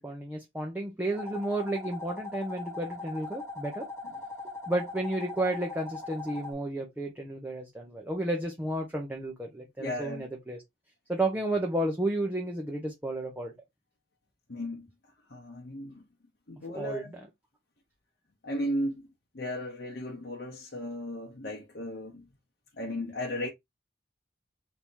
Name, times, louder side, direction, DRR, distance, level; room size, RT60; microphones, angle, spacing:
voice 1, 0.0-3.9 4.7-10.6 11.1-13.5 16.7-17.2, right 1 dB, 10° right, 0.7 m, -32 dB
sound 1, 1.1-6.5, left 3 dB, 15° left, 1.1 m, -40 dB
voice 2, 9.8-10.2 14.5-14.9 15.3-16.0 16.5-17.2 18.4-19.0 19.3-22.3 22.8-23.5, left 1 dB, 65° left, 0.9 m, -35 dB
3.5 x 2.8 x 4.5 m
head